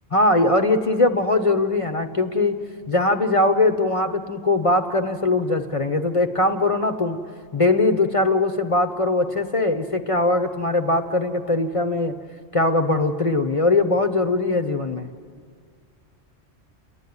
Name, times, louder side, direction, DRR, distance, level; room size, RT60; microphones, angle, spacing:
voice 1, 0.1-2.6 2.9-7.2 7.5-12.2 12.5-15.1, left 2 dB, 30° left, 6 dB, 0.8 m, -21 dB
29.5 x 11.5 x 9.6 m, 2.1 s
omnidirectional pair, 1.2 m